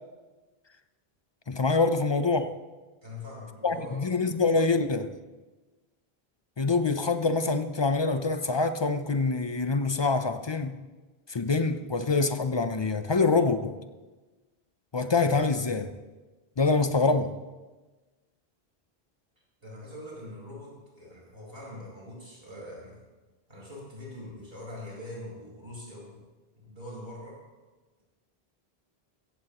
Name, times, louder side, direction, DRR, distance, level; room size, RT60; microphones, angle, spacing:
voice 1, 1.5-2.5 3.6-5.1 6.6-10.8 11.3-13.8 14.9-15.9 16.6-17.3, left 3 dB, 35° left, 10 dB, 0.5 m, -25 dB
voice 2, 3.0-4.2 19.6-23.0 23.5-26.2 26.6-27.4, left 1 dB, 70° right, -5 dB, 5.1 m, -43 dB
15.5 x 15.5 x 3.0 m, 1.2 s
omnidirectional pair, 1.0 m